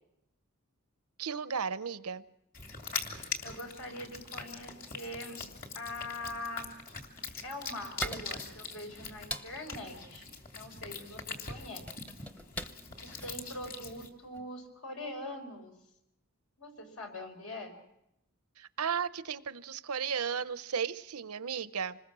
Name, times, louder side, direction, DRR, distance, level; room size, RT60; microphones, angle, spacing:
voice 1, 1.2-2.2 18.6-22.0, right 7 dB, 90° right, 14 dB, 0.8 m, -34 dB
sound 1, 2.5-14.1, left 5 dB, 40° left, 2.6 m, -43 dB
voice 2, 3.1-5.4 5.7-6.9 7.4-10.3 10.5-11.9 13.0-15.7 16.6-17.7, left 1 dB, 75° left, 4 dB, 5.0 m, -43 dB
sound 2, 7.3-14.5, equal, 5° left, 0.9 m, -44 dB
26.5 x 20.5 x 6.2 m, 0.83 s
head